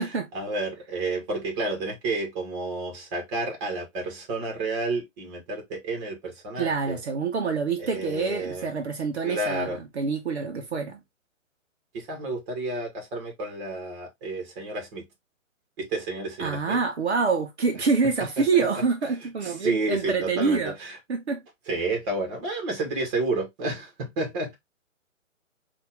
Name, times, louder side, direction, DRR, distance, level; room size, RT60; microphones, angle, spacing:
voice 1, 0.3-7.0 7.8-8.7 9.2-9.8 11.9-15.0 15.8-16.8 19.4-21.0 21.7-24.6, right 2 dB, 20° right, 1.6 m, -30 dB
voice 2, 6.6-11.0 16.4-20.7 21.1-21.4, right 4 dB, 55° right, 1.0 m, -26 dB
4.3 x 2.8 x 3.5 m
figure-of-eight pair, 140°, 39 cm